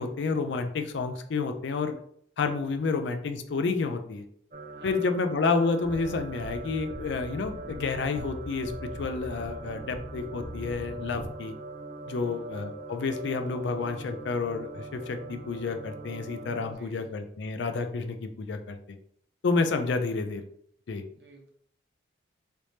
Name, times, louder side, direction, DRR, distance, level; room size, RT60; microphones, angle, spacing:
voice 1, 0.0-1.9 2.4-4.2 4.8-11.5 12.1-18.8 19.4-20.5 20.9-21.0, left 4 dB, 75° left, 7 dB, 0.4 m, -30 dB
sound 1, 4.5-16.7, right 3 dB, 40° right, 0.4 m, -42 dB
voice 2, 4.7-5.1 12.2-12.6 16.6-17.2 21.1-21.5, right 2 dB, 65° right, 1 dB, 0.8 m, -52 dB
sound 2, 5.8-11.3, equal, 50° left, 1.4 m, -42 dB
3.3 x 3.1 x 2.7 m, 0.65 s
head